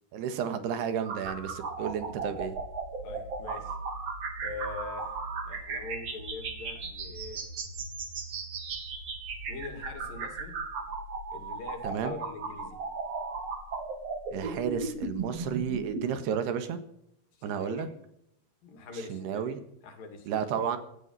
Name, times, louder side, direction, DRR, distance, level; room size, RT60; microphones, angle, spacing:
voice 1, 0.1-2.6 11.8-12.2 14.3-16.8 17.4-17.9 19.1-19.6 20.3-20.8, right 8 dB, 85° right, 10 dB, 3.6 m, -32 dB
sound 1, 1.0-16.0, right 4 dB, 45° right, 3.3 m, -36 dB
voice 2, 3.0-3.8 4.4-5.2 5.4-7.5 9.5-10.7 11.3-12.8 16.1-16.3 17.4-18.0 18.6-20.7, left 4 dB, 60° left, 6 dB, 4.2 m, -43 dB
17.5 x 13.0 x 5.6 m, 0.73 s
omnidirectional pair, 4.6 m